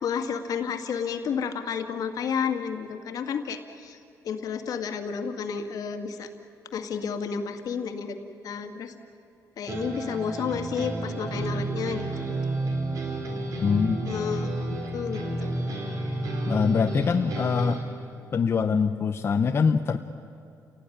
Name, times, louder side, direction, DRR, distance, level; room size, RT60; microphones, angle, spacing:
voice 1, 0.0-6.3 6.7-8.2 8.4-8.9 9.6-12.4 14.1-14.5 14.9-15.5, left 6 dB, 65° left, 6 dB, 2.1 m, -31 dB
sound 1, 9.7-17.8, right 1 dB, 55° right, 4.7 m, -31 dB
voice 2, 13.6-14.0 16.5-17.8 18.3-20.0, left 6 dB, 40° left, 6 dB, 0.8 m, -23 dB
29.0 x 18.0 x 10.0 m, 2.7 s
cardioid pair, 140°, 7 cm